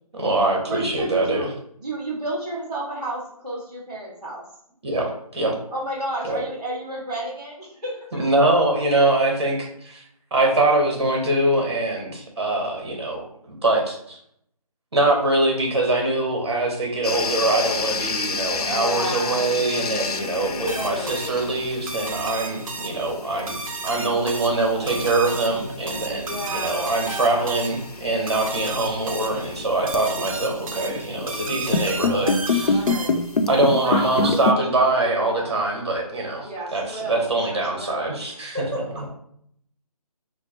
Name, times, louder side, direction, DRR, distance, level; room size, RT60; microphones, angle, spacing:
voice 1, 0.1-1.5 4.8-5.6 6.2-6.4 8.2-10.0 10.3-14.2 14.9-32.8 33.5-38.6, right 2 dB, 45° right, 1 dB, 1.0 m, -23 dB
voice 2, 0.7-1.5 1.8-4.4 5.7-8.2 18.6-19.5 20.7-21.4 26.2-27.5 31.9-33.1 33.8-35.5 36.4-39.1, right 1 dB, 10° right, -13 dB, 0.8 m, -32 dB
sound 1, 17.0-34.5, left 3 dB, 80° left, 0.5 m, -29 dB
sound 2, 20.7-33.4, right 3 dB, 60° right, 0.5 m, -34 dB
4.4 x 2.1 x 2.9 m, 0.68 s
hypercardioid pair, 175°, 20 cm